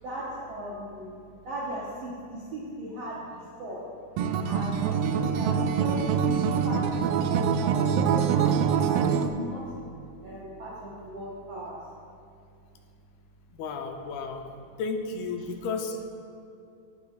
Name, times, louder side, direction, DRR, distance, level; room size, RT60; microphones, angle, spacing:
voice 1, 0.0-1.2 1.4-3.8 4.4-9.7 10.2-11.8, right 1 dB, 70° right, -6 dB, 1.5 m, -37 dB
Acoustic guitar, 4.2-9.3, right 7 dB, 85° right, 2.0 m, -25 dB
voice 2, 13.5-14.5 14.8-16.1, left 4 dB, 85° left, 4 dB, 2.4 m, -33 dB
17.0 x 8.6 x 2.4 m, 2.5 s
omnidirectional pair, 4.6 m